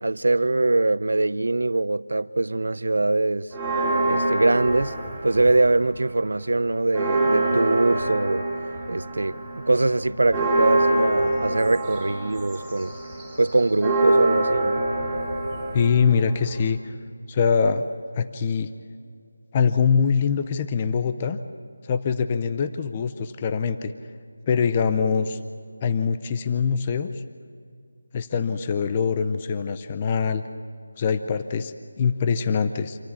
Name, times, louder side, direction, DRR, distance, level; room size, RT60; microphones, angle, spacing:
voice 1, 0.0-3.5 4.1-4.9 5.2-8.4 8.9-9.3 9.7-12.9 13.4-14.8, right 2 dB, 70° right, 0.6 m, -22 dB
Church bell, 3.5-5.9 6.3-6.4 6.7-16.7, right 2 dB, ahead, 2.5 m, -25 dB
voice 2, 15.7-16.9 17.3-17.9 18.1-18.7 19.5-21.4 21.8-23.9 24.5-25.4 25.8-27.1 28.1-30.4 31.0-33.0, left 6 dB, 15° left, 0.5 m, -23 dB
26.5 x 14.5 x 8.4 m
figure-of-eight pair, 175°, 0 cm